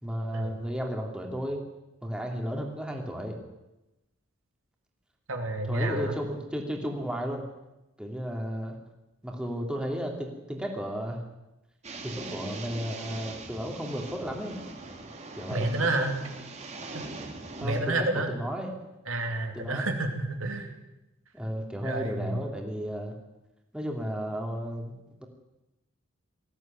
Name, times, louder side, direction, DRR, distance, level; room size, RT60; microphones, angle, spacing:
voice 1, 0.0-1.6 2.0-3.4 5.7-7.4 8.0-8.8 9.2-11.2 12.0-14.6 15.3-15.7 17.6-18.7 19.5-19.9 21.3-23.1 23.7-25.3, equal, 5° right, 1 dB, 3.0 m, -33 dB
voice 2, 5.3-6.2 15.5-16.2 16.9-17.0 17.6-18.3 19.1-20.7 21.8-22.4, right 2 dB, 70° right, 4 dB, 2.9 m, -29 dB
sound 1, 11.8-17.8, right 3 dB, 30° right, 2.6 m, -41 dB
19.5 x 15.5 x 9.2 m, 0.98 s
head